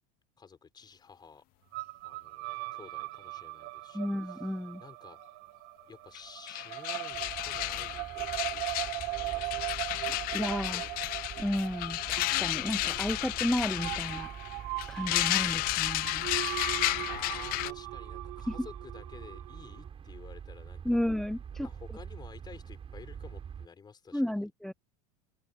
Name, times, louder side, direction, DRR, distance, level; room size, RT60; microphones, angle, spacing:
voice 1, 0.4-1.4 2.0-4.4 4.8-5.2 5.9-9.8 10.2-10.4 10.7-11.0 15.7-21.0 21.6-24.5, left 5 dB, 20° left, 5.0 m, -52 dB
sound 1, 1.7-19.9, right 23 dB, 60° right, 1.4 m, -40 dB
voice 2, 3.9-4.8 10.1-10.8 11.4-16.3 20.8-21.7 24.1-24.7, left 1 dB, ahead, 0.3 m, -33 dB
sound 2, 6.2-6.3 6.5-17.7, left 20 dB, 50° left, 0.6 m, -33 dB
sound 3, 7.1-23.7, right 7 dB, 30° right, 4.8 m, -46 dB
supercardioid pair, 110°, 19 cm